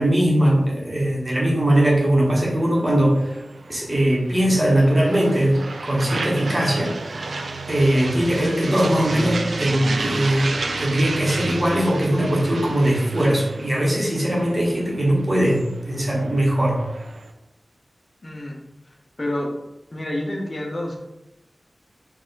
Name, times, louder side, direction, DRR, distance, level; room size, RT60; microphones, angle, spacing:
voice 1, 0.0-3.3 3.7-7.0 7.7-16.8, right 1 dB, 30° right, -3 dB, 1.2 m, -20 dB
sound 1, 2.5-17.3, right 3 dB, 75° right, 0.4 m, -32 dB
voice 2, 18.2-18.6 19.2-19.6 19.9-21.0, left 1 dB, 35° left, 0 dB, 0.7 m, -28 dB
4.3 x 2.4 x 3.8 m, 0.94 s
wide cardioid pair, 80°, 0 cm